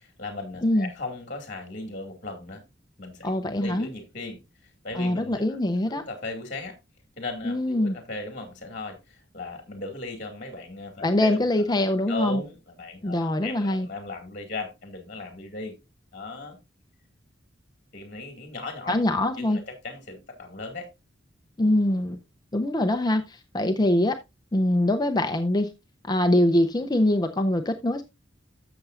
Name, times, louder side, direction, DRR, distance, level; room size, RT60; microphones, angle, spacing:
voice 1, 0.2-2.6 3.0-5.6 5.9-6.8 7.2-11.4 12.1-15.8 16.1-16.6 17.9-19.0 19.4-20.9, left 2 dB, 40° left, 2.1 m, -37 dB
voice 2, 3.2-3.9 5.0-6.0 7.4-8.0 11.0-12.4 13.0-13.9 18.9-19.6 21.6-22.2 22.5-24.2 24.5-25.7 26.1-28.0, left 1 dB, 20° left, 0.6 m, -23 dB
13.5 x 6.9 x 2.5 m
head